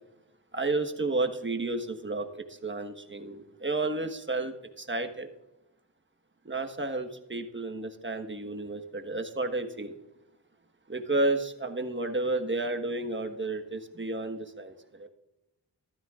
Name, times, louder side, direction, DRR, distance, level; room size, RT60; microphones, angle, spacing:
voice 1, 0.5-2.2 2.6-5.3 6.4-9.9 10.9-15.1, right 2 dB, 25° right, 6 dB, 1.4 m, -31 dB
15.0 x 12.5 x 2.5 m, 0.94 s
cardioid pair, 50°, 42 cm